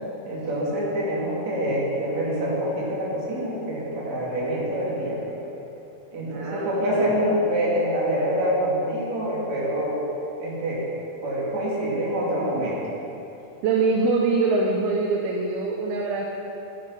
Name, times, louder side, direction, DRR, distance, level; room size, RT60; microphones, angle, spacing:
voice 1, 0.3-5.2 6.1-10.0 10.4-10.8 11.2-12.8, equal, 50° right, -6 dB, 3.5 m, -26 dB
voice 2, 6.2-7.1 13.6-16.3, right 3 dB, 90° right, -1 dB, 2.8 m, -24 dB
11.5 x 9.4 x 5.7 m, 2.9 s
omnidirectional pair, 4.4 m